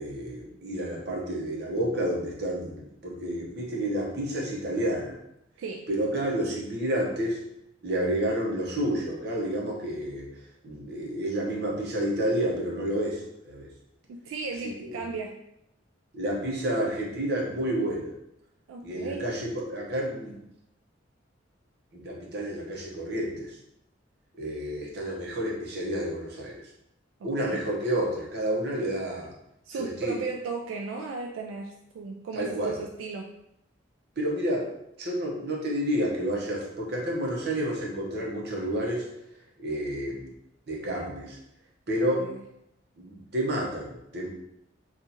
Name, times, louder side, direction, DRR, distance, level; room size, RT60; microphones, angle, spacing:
voice 1, 0.0-5.1 5.9-7.4 7.8-10.3 10.6-13.7 14.8-15.0 16.1-18.1 18.8-20.4 21.9-23.6 24.4-26.7 27.2-29.3 29.8-30.1 32.3-32.8 34.2-34.7 35.0-39.1 39.6-40.3 40.7-41.4 41.9-42.3 43.0-44.3, right 1 dB, 55° right, -2 dB, 0.8 m, -30 dB
voice 2, 5.6-5.9 14.1-15.4 18.7-19.3 27.2-27.6 29.6-33.3 42.2-42.4, right 4 dB, 90° right, 1 dB, 0.3 m, -36 dB
2.8 x 2.4 x 3.9 m, 0.80 s
head